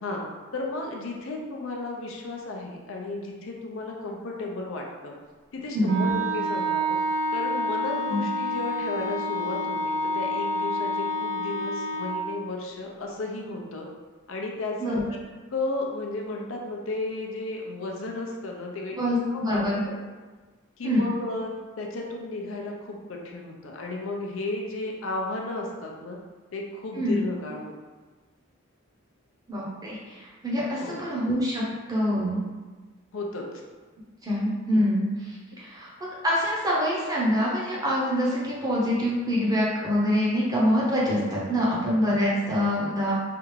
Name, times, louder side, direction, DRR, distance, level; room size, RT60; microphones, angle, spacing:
voice 1, 0.5-5.1 5.5-7.0 7.3-13.9 14.3-15.2 15.5-19.0 19.3-20.0 20.8-26.2 26.5-27.7 30.8-31.0 33.1-33.5 34.7-34.8 35.5-35.6, left 2 dB, 70° left, 0 dB, 0.5 m, -34 dB
voice 2, 5.7-6.1 8.1-8.2 14.8-15.0 18.9-19.8 20.8-21.0 27.0-27.2 29.5-31.6 31.9-32.4 34.2-35.9 36.2-43.2, equal, 15° right, -6 dB, 0.6 m, -25 dB
Wind instrument woodwind instrument, 5.8-12.2, equal, 60° right, 0.4 m, -28 dB
3.3 x 2.4 x 3.1 m, 1.3 s
head